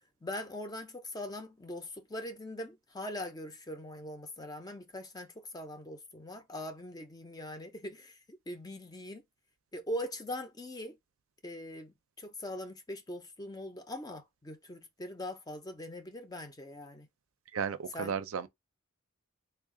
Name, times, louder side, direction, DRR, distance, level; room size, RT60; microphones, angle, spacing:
voice 1, 0.2-9.2 9.7-11.0 11.4-17.1 17.9-18.2, left 1 dB, 15° left, 0.5 m, -41 dB
voice 2, 17.5-18.5, right 6 dB, 65° right, 0.4 m, -34 dB
3.3 x 2.3 x 3.7 m
head